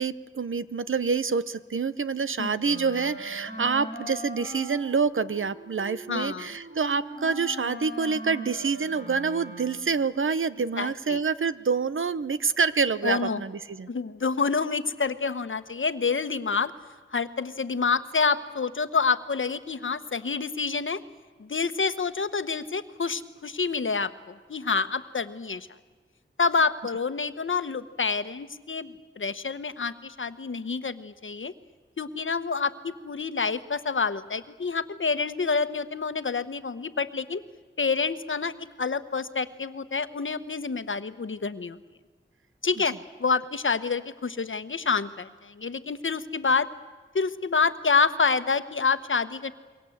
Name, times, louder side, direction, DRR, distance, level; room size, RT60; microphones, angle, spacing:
voice 1, 0.0-13.9, right 5 dB, 80° right, 14 dB, 0.9 m, -27 dB
Wind instrument woodwind instrument, 2.6-10.0, equal, 55° right, 7.1 m, -41 dB
voice 2, 6.1-6.5 10.8-11.2 13.0-13.4 13.9-16.7 17.1-21.0 21.4-25.7 26.4-31.5 32.0-37.4 37.8-38.5 38.8-41.8 42.6-42.9 43.2-46.7 47.1-49.5, left 5 dB, 75° left, 11 dB, 1.1 m, -27 dB
27.5 x 23.0 x 8.0 m, 1.4 s
wide cardioid pair, 70°, 20 cm